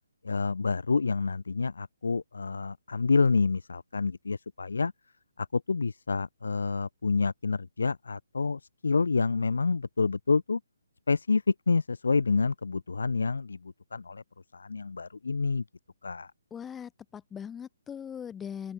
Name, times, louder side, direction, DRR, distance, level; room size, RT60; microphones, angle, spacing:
voice 1, 0.2-4.9 5.4-10.6 11.1-14.2 14.5-15.6 16.0-16.3, left 4 dB, 75° left, 0.7 m, -28 dB
voice 2, 16.5-18.7, left 8 dB, 10° left, 0.8 m, -40 dB
open air
figure-of-eight pair, 145°, 0 cm